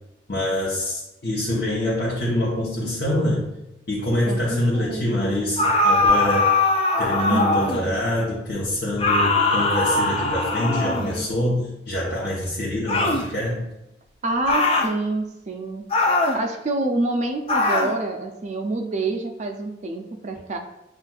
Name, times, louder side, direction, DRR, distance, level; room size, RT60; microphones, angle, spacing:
voice 1, 0.3-3.5 3.9-6.5 7.0-13.7, left 1 dB, 65° left, -6 dB, 0.9 m, -25 dB
voice 2, 4.3-5.1 7.3-7.8 14.2-15.8 16.3-20.6, right 2 dB, 40° right, 5 dB, 0.4 m, -27 dB
sound 1, 5.6-7.9 9.0-11.3 12.9-13.3 14.5-14.9 15.9-16.4 17.5-17.9, left 2 dB, 30° left, 0.5 m, -21 dB
7.3 x 2.5 x 2.3 m, 0.91 s
head